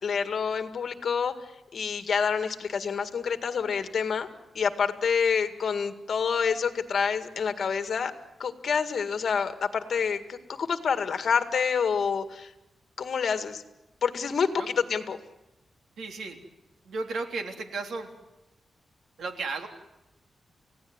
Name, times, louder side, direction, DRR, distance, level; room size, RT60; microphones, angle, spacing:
voice 1, 0.0-1.3 1.7-4.3 4.6-8.1 8.4-12.5 13.0-13.6 14.0-14.5 14.9-15.2, left 6 dB, 60° left, 9 dB, 2.0 m, -27 dB
voice 2, 16.0-16.4 16.8-18.1 19.2-19.7, right 3 dB, 80° right, 5 dB, 3.5 m, -34 dB
30.0 x 17.0 x 9.6 m, 0.95 s
wide cardioid pair, 135°, 0 cm